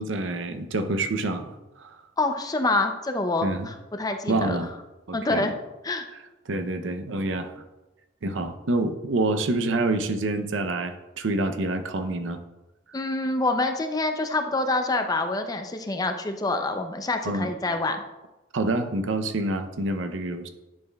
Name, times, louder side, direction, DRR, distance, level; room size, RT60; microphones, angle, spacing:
voice 1, 0.0-2.0 3.4-3.7 4.3-4.7 5.1-5.5 6.5-7.5 8.2-12.4 17.2-17.5 18.5-20.5, right 2 dB, 80° right, 8 dB, 0.6 m, -27 dB
voice 2, 2.2-4.7 5.1-5.5 5.8-6.1 12.9-18.0, left 2 dB, 20° left, 6 dB, 0.5 m, -26 dB
10.5 x 6.5 x 2.3 m, 1.1 s
head